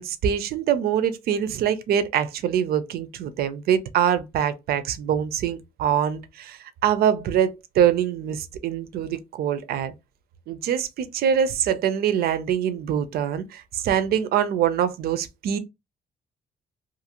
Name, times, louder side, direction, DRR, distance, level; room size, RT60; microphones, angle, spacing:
voice 1, 0.0-9.9 10.5-15.6, right 9 dB, 70° right, 0.4 m, -24 dB
2.6 x 2.5 x 2.8 m
cardioid pair, 145°, 16 cm